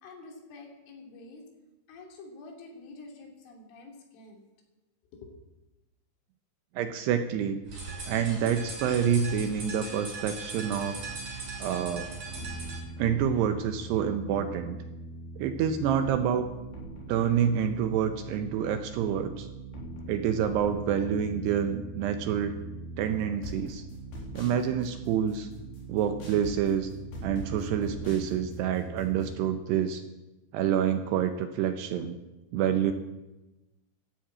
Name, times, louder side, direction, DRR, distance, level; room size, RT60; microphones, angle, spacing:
voice 1, 0.0-1.4 1.9-4.4 5.1-5.3, left 3 dB, 85° left, 1 dB, 5.4 m, -48 dB
voice 2, 6.8-7.6 8.1-11.0 11.6-12.1 13.0-14.8 15.4-16.5 17.1-19.5 20.1-22.6 23.0-23.8 24.3-25.5 25.9-26.9 27.2-30.0 30.5-32.2 32.5-32.9, right 8 dB, 75° right, 7 dB, 2.6 m, -27 dB
sound 1, 7.7-12.8, right 3 dB, 40° right, 6.9 m, -39 dB
sound 2, 10.9-29.3, right 2 dB, 55° left, 5.3 m, -42 dB
12.5 x 11.5 x 8.7 m, 1.0 s
omnidirectional pair, 5.5 m